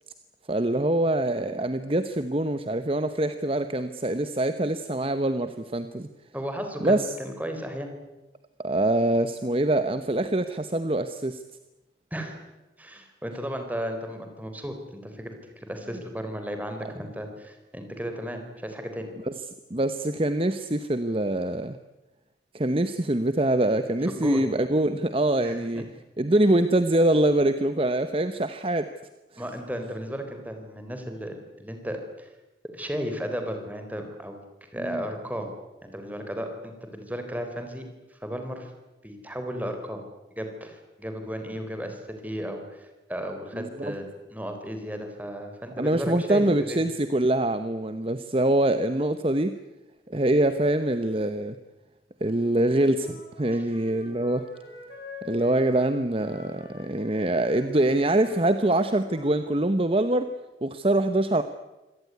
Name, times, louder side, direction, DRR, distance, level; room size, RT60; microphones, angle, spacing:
voice 1, 0.5-6.1 6.8-7.1 8.6-11.4 19.3-19.4 19.7-21.8 22.5-25.9 26.2-28.9 29.3-29.4 34.8-35.0 43.5-43.9 45.8-49.6 50.1-51.6 52.2-54.4 55.2-60.3 60.6-61.4, right 1 dB, 30° right, 10 dB, 0.9 m, -24 dB
voice 2, 6.3-7.9 12.1-12.4 12.8-14.8 15.0-15.4 15.7-19.1 24.0-24.4 25.4-25.6 29.4-32.3 32.7-34.4 34.7-35.5 35.8-37.9 38.1-38.7 39.0-40.0 40.4-46.8 53.5-53.7, equal, 10° right, 5 dB, 4.0 m, -34 dB
Wind instrument woodwind instrument, 52.9-59.5, left 2 dB, 65° left, 6.8 m, -45 dB
26.0 x 18.0 x 9.6 m, 1.1 s
head